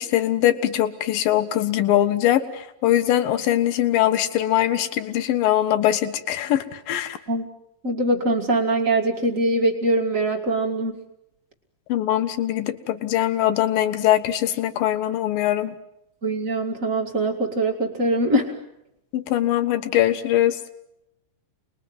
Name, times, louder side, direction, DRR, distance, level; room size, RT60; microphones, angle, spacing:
voice 1, 0.0-7.2 11.9-15.7 19.1-20.6, left 12 dB, 65° left, 10 dB, 2.4 m, -22 dB
voice 2, 7.8-10.9 16.2-18.6, right 1 dB, 90° right, 0 dB, 0.7 m, -22 dB
29.0 x 21.0 x 9.5 m, 0.86 s
omnidirectional pair, 5.4 m